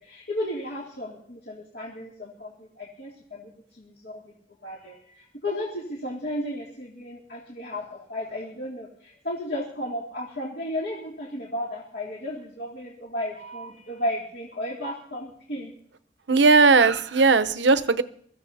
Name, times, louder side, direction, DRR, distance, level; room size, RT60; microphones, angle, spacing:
voice 1, 0.0-4.3 4.6-15.7, left 1 dB, 60° left, -3 dB, 2.5 m, -34 dB
voice 2, 16.3-18.0, right 4 dB, 85° right, 12 dB, 0.9 m, -18 dB
24.0 x 14.5 x 2.8 m, 0.65 s
head